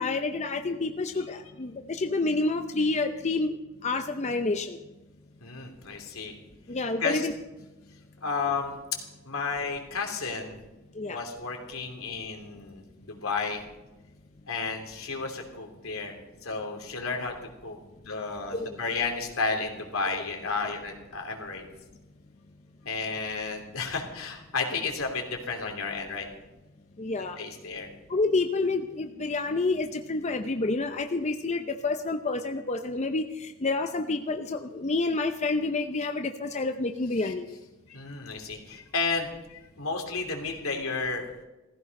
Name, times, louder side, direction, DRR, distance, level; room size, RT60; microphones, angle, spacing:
voice 1, 0.0-3.6 3.8-4.8 6.7-7.3 11.0-11.2 18.5-18.7 27.0-27.4 28.1-37.5, left 3 dB, 35° left, 6 dB, 0.7 m, -28 dB
voice 2, 5.4-6.3 7.0-7.3 8.2-8.7 9.2-10.6 11.1-13.6 14.5-16.2 16.4-17.3 17.6-21.6 22.8-26.3 27.4-27.9 37.2-37.3 37.9-41.3, left 4 dB, 85° left, 3 dB, 3.0 m, -32 dB
17.0 x 15.0 x 5.3 m, 1.1 s
head